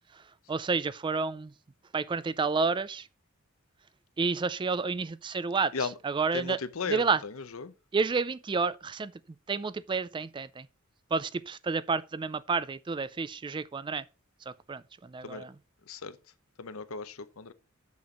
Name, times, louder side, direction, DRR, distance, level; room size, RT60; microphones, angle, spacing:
voice 1, 0.5-1.5 1.9-3.1 4.2-6.6 6.9-7.2 7.9-9.1 9.5-10.7 11.1-14.0 14.5-15.5, right 4 dB, 20° right, 0.3 m, -30 dB
voice 2, 6.3-7.7 15.2-15.4 15.9-16.2 16.6-17.5, left 4 dB, 75° left, 0.8 m, -36 dB
7.0 x 6.3 x 5.3 m
head